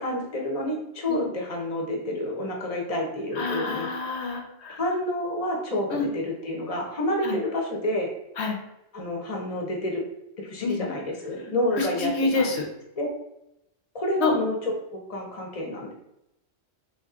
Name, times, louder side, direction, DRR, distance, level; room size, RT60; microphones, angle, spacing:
voice 1, 0.0-3.9 4.8-8.1 8.9-10.0 10.4-12.5 13.0-13.1 13.9-15.9, left 1 dB, 35° left, 0 dB, 0.8 m, -29 dB
voice 2, 3.4-4.8 5.9-6.1 7.2-7.4 8.4-8.6 10.6-10.8 11.8-12.7 14.2-14.3, left 4 dB, 60° left, 2 dB, 1.0 m, -27 dB
3.8 x 2.9 x 3.7 m, 0.86 s
omnidirectional pair, 1.3 m